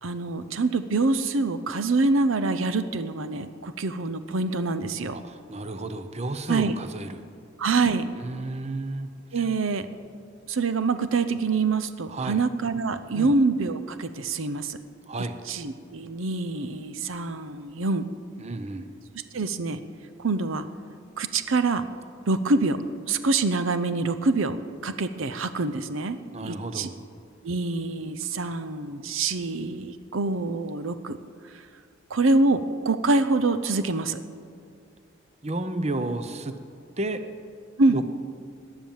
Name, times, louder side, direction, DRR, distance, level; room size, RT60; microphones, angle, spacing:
voice 1, 0.0-5.1 6.5-6.8 7.6-8.0 9.3-9.9 10.5-14.8 15.5-18.1 19.1-19.8 20.2-20.6 21.2-21.8 22.3-22.8 23.1-24.6 24.8-26.9 27.4-31.2 31.5-31.6 32.1-34.2 37.8-38.0, right 3 dB, 80° right, 11 dB, 0.7 m, -25 dB
voice 2, 5.1-7.3 8.2-9.1 9.3-9.5 12.1-12.4 13.1-13.3 15.1-15.4 18.4-18.9 26.3-27.0 35.4-36.5 37.0-37.2 37.9-38.0, right 2 dB, 35° right, 9 dB, 0.8 m, -32 dB
18.0 x 11.0 x 7.3 m, 2.3 s
head